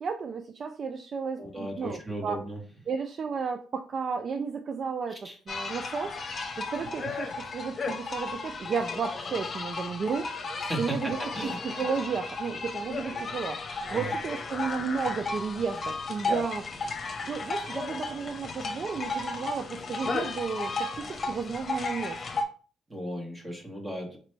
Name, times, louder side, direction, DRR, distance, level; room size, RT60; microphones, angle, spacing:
voice 1, 0.0-2.4 2.9-5.2 5.5-6.2 6.6-10.3 10.8-11.2 11.4-16.7 17.3-22.2, right 5 dB, 50° right, 6 dB, 0.4 m, -33 dB
voice 2, 1.4-2.6 5.2-5.4 10.7-11.6 13.9-14.1 22.9-24.2, right 1 dB, 20° right, 0 dB, 1.6 m, -36 dB
sound 1, 5.5-22.4, left 3 dB, 40° left, 0.9 m, -34 dB
4.3 x 2.9 x 3.3 m, 0.41 s
cardioid pair, 90°, 0 cm